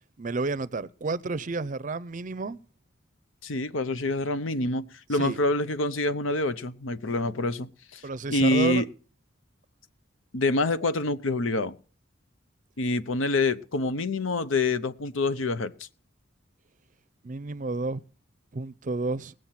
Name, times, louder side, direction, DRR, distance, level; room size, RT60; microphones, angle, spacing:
voice 1, 0.2-2.6 5.1-5.4 8.0-8.9 17.2-18.0 18.5-19.3, right 3 dB, 40° right, 0.5 m, -30 dB
voice 2, 3.4-8.0 8.3-8.8 10.3-11.7 12.8-15.9, left 2 dB, 80° left, 0.8 m, -26 dB
19.5 x 7.8 x 5.8 m
head